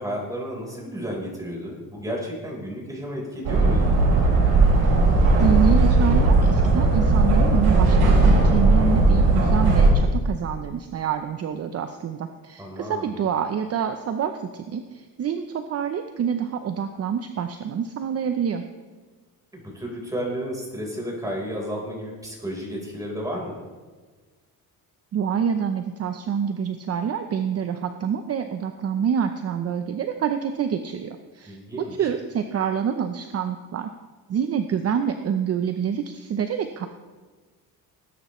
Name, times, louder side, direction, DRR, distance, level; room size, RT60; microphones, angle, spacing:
voice 1, 0.0-4.0 12.6-13.1 19.5-23.6 31.4-32.1, equal, 10° right, -2 dB, 4.1 m, -32 dB
sound 1, 3.4-9.9, right 2 dB, 85° right, 4.0 m, -17 dB
voice 2, 5.4-18.6 25.1-33.9 34.3-36.9, right 7 dB, 45° right, 7 dB, 0.7 m, -27 dB
19.0 x 9.9 x 3.1 m, 1.4 s
cardioid pair, 130°, 35 cm